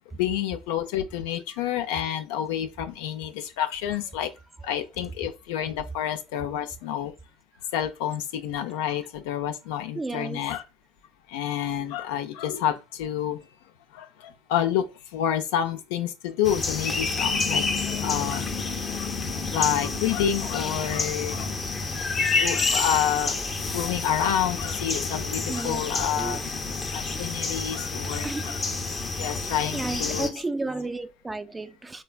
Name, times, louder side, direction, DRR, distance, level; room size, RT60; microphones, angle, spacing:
voice 1, 0.2-4.3 4.6-7.1 7.7-10.6 11.3-13.4 13.9-18.5 19.0-19.1 19.5-21.6 22.2-23.3 23.7-26.4 26.7-28.6 29.2-30.3, left 10 dB, 80° left, 0.4 m, -29 dB
voice 2, 9.9-10.5 25.5-26.5 28.2-28.6 29.7-32.0, right 3 dB, 15° right, 0.3 m, -33 dB
sound 1, 16.4-30.3, left 3 dB, 30° left, 0.6 m, -29 dB
3.3 x 2.3 x 2.2 m
supercardioid pair, 80°, 0 cm